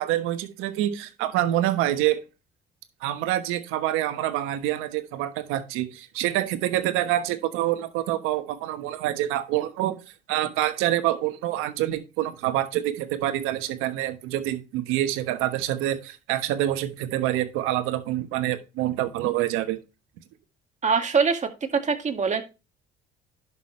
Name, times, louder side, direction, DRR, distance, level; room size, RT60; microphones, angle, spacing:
voice 1, 0.0-2.2 3.0-10.0 10.3-19.8, right 13 dB, 85° right, 1.2 m, -26 dB
voice 2, 20.8-22.4, right 5 dB, 35° right, 2.0 m, -23 dB
11.0 x 6.1 x 3.2 m
supercardioid pair, 80°, 21 cm